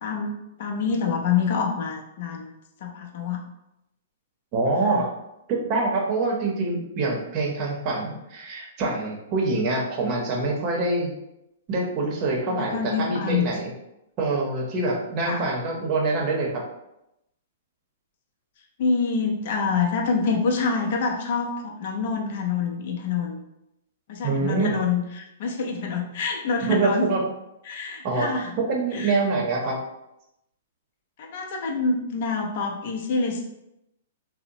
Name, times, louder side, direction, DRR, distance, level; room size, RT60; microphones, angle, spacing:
voice 1, 0.0-2.5 2.8-3.5 4.8-5.0 12.5-13.5 15.3-15.5 18.8-23.4 24.1-27.1 27.7-28.6 28.9-29.2 29.7-29.8 31.2-33.4, left 5 dB, 55° left, 1 dB, 0.5 m, -26 dB
voice 2, 4.5-5.1 5.5-11.1 11.7-13.7 14.2-16.6 24.2-24.7 26.6-27.2 28.0-28.3 28.6-29.7, right 3 dB, 40° right, -1 dB, 0.7 m, -25 dB
2.8 x 2.0 x 2.6 m, 0.86 s
hypercardioid pair, 135°, 0 cm